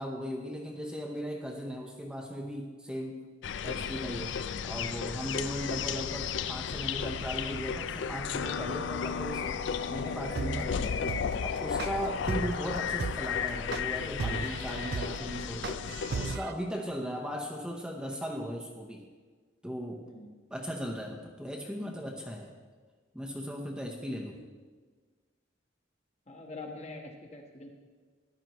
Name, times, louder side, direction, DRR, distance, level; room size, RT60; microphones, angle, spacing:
voice 1, 0.0-3.2 3.6-4.4 4.6-9.6 9.9-11.1 11.4-19.0 19.6-20.0 20.5-22.5 23.1-24.4, equal, 5° right, 0 dB, 0.8 m, -37 dB
sound 1, 3.4-16.4, left 7 dB, 65° left, 0.4 m, -34 dB
sound 2, 10.4-16.5, right 5 dB, 55° right, 0.4 m, -35 dB
voice 2, 10.7-11.1 20.0-20.4 26.3-27.7, left 2 dB, 35° left, 1 dB, 1.3 m, -44 dB
14.0 x 10.5 x 3.0 m, 1.5 s
head